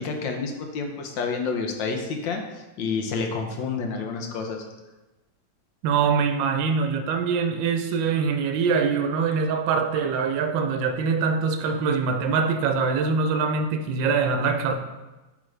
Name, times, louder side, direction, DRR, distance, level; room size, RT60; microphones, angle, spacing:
voice 1, 0.0-2.4 2.8-4.6, left 4 dB, 75° left, 1.4 m, -29 dB
voice 2, 5.8-14.8, right 5 dB, 75° right, 1.3 m, -23 dB
8.6 x 3.8 x 3.2 m
omnidirectional pair, 2.1 m